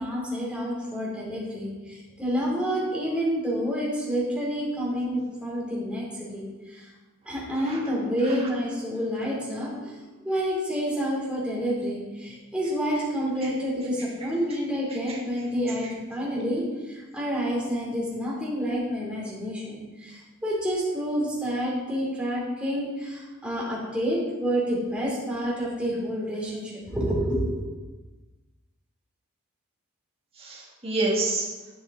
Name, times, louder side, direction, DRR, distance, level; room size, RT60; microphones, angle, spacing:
voice 1, 0.0-6.1 6.3-6.9 7.3-10.0 10.2-27.5, equal, 5° right, -6 dB, 2.7 m, -28 dB
voice 2, 14.0-14.3 14.9-15.2 15.8-15.9 30.4-31.5, right 2 dB, 25° right, -3 dB, 1.6 m, -30 dB
11.0 x 5.6 x 3.7 m, 1.2 s
head